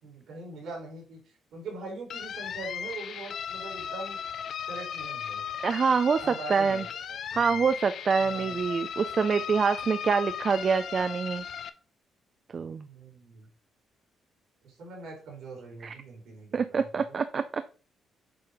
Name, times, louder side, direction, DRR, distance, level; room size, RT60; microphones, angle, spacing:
voice 1, 0.0-4.2 4.7-5.4 6.2-6.9 7.3-7.6 8.2-8.5 12.8-13.5 14.6-17.2, right 3 dB, 75° right, 0 dB, 3.8 m, -42 dB
sound 1, 2.1-11.7, left 8 dB, 65° left, 0.5 m, -37 dB
voice 2, 5.6-6.8 7.3-11.4 12.5-12.9 15.8-15.9 16.5-17.6, right 5 dB, 45° right, 10 dB, 0.5 m, -26 dB
7.7 x 3.0 x 5.0 m, 0.37 s
cardioid pair, 90°, 0 cm